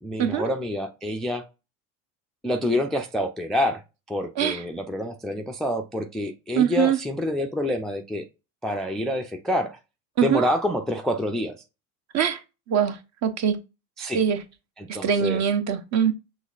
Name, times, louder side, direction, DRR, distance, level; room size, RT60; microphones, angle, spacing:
voice 1, 0.0-1.4 2.4-3.8 4.1-8.3 8.6-9.8 10.2-11.6 14.0-14.2 14.8-15.4, left 1 dB, ahead, 0.3 m, -27 dB
voice 2, 6.6-7.0 10.2-10.4 12.1-12.4 12.7-13.6 14.1-14.4 14.9-16.1, right 8 dB, 40° right, 0.8 m, -23 dB
6.2 x 3.2 x 2.4 m
hypercardioid pair, 75°, 42 cm